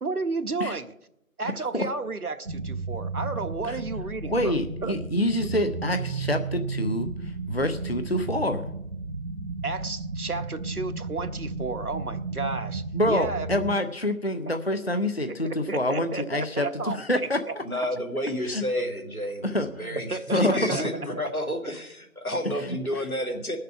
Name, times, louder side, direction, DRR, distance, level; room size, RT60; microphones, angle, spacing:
voice 1, 0.0-0.9 1.4-4.5 4.8-4.9 9.6-13.5 15.3-17.5 20.1-20.8, right 3 dB, 85° right, 9 dB, 1.1 m, -32 dB
sound 1, 2.5-13.8, right 3 dB, 55° right, 0.7 m, -33 dB
voice 2, 4.2-8.7 12.9-17.4 17.7-17.9 18.4-18.6 19.4-20.0 20.3-20.8, left 1 dB, 45° left, 8 dB, 0.7 m, -27 dB
voice 3, 17.6-23.6, equal, 75° left, 3 dB, 2.8 m, -30 dB
20.0 x 6.7 x 5.7 m, 0.82 s
figure-of-eight pair, 175°, 43 cm